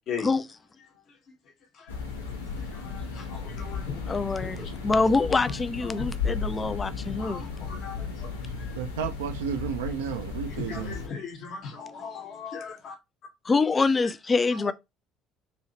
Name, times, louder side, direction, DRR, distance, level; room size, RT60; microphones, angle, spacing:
sound 1, 1.9-11.1, left 5 dB, 80° left, 0.7 m, -35 dB
voice 1, 2.6-4.0 4.6-4.7 5.3-5.4 6.0-6.1 7.2-8.3 10.5-13.0 14.0-14.1, left 6 dB, 50° left, 1.0 m, -38 dB
voice 2, 4.1-7.5 8.7-8.8 13.4-14.7, left 4 dB, 25° left, 0.3 m, -25 dB
voice 3, 8.7-11.0, right 8 dB, 70° right, 0.4 m, -32 dB
3.0 x 2.7 x 2.7 m
figure-of-eight pair, 55°, 0 cm